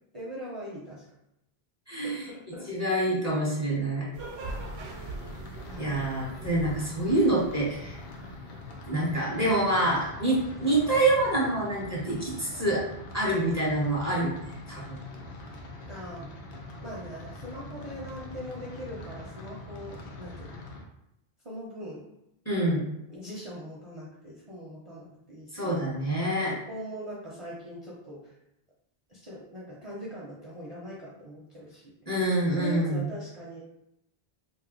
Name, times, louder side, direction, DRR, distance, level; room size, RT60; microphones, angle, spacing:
voice 1, 0.1-1.0 2.0-2.7 5.6-6.1 15.9-16.3 16.8-20.6 21.4-22.0 23.1-25.7 26.4-28.3 29.1-32.1 32.6-33.6, equal, 35° right, -6 dB, 0.6 m, -41 dB
voice 2, 1.9-2.3 2.7-4.1 5.8-8.0 8.9-12.8 13.1-15.0 22.4-22.8 25.5-26.5 32.1-33.1, right 1 dB, 15° left, -5 dB, 0.8 m, -26 dB
sound 1, 4.1-8.8, right 2 dB, 80° right, 0.8 m, -42 dB
sound 2, 4.4-20.8, left 2 dB, 70° left, 0.8 m, -43 dB
2.6 x 2.4 x 3.7 m, 0.84 s
omnidirectional pair, 1.1 m